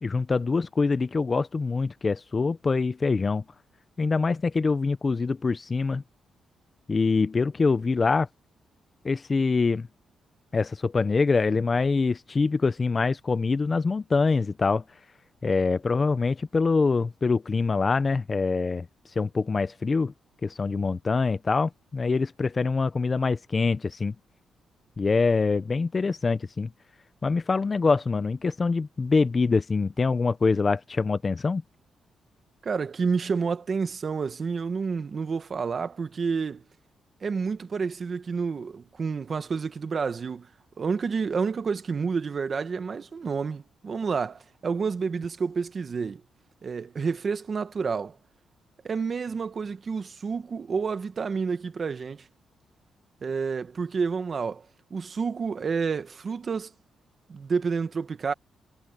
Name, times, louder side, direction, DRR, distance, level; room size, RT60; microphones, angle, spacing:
voice 1, 0.0-3.4 4.0-6.0 6.9-8.3 9.0-9.9 10.5-14.8 15.4-18.9 19.2-20.1 20.4-24.1 25.0-26.7 27.2-31.6, left 4 dB, 25° left, 0.5 m, -24 dB
voice 2, 32.6-36.6 37.2-40.5 40.8-46.2 46.6-48.2 48.8-52.2 53.2-56.7 57.3-58.3, right 5 dB, 35° right, 1.2 m, -29 dB
cardioid pair, 140°, 0 cm